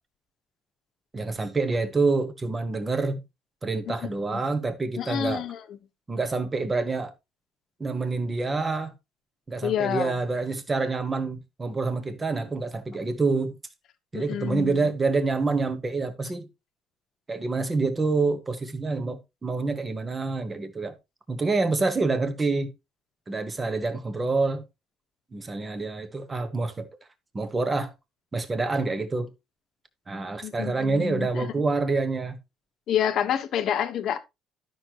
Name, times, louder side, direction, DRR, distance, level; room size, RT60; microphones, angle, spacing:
voice 1, 1.1-3.2 3.6-5.4 6.1-7.1 7.8-8.9 9.5-13.5 14.1-16.5 17.3-21.0 21.3-22.7 23.3-24.6 25.3-26.9 27.3-27.9 28.3-29.3 30.1-32.4, right 3 dB, 15° right, 1.3 m, -27 dB
voice 2, 5.0-5.6 9.6-10.2 14.1-14.9 30.4-31.5 32.9-34.2, left 9 dB, 45° left, 1.2 m, -28 dB
12.5 x 6.1 x 3.0 m
cardioid pair, 180°, 0 cm